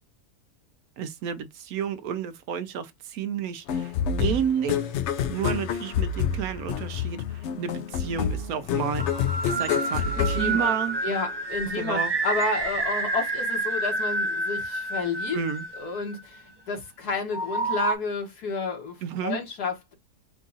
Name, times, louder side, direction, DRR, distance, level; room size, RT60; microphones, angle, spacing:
voice 1, 1.0-3.9 4.2-4.8 5.3-9.1 9.5-11.0 11.7-12.1 15.3-15.7 19.0-19.4, right 7 dB, 75° right, 1.1 m, -31 dB
sound 1, 3.7-11.3, left 7 dB, 65° left, 0.7 m, -28 dB
sound 2, 9.0-16.2 17.3-17.9, right 3 dB, 25° right, 0.5 m, -29 dB
voice 2, 10.2-10.8 11.0-15.4 15.8-19.9, left 3 dB, 80° left, 2.0 m, -31 dB
4.7 x 2.4 x 3.9 m
omnidirectional pair, 1.6 m